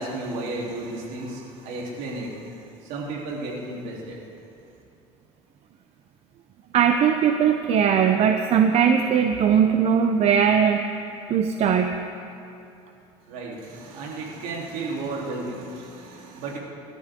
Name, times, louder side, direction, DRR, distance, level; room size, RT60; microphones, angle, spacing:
voice 1, 0.0-4.2 13.3-16.6, right 2 dB, 70° right, -3 dB, 3.7 m, -33 dB
voice 2, 6.7-10.8 11.3-12.0, right 7 dB, 50° right, 5 dB, 0.8 m, -19 dB
22.0 x 13.0 x 3.9 m, 2.8 s
supercardioid pair, 95°, 14 cm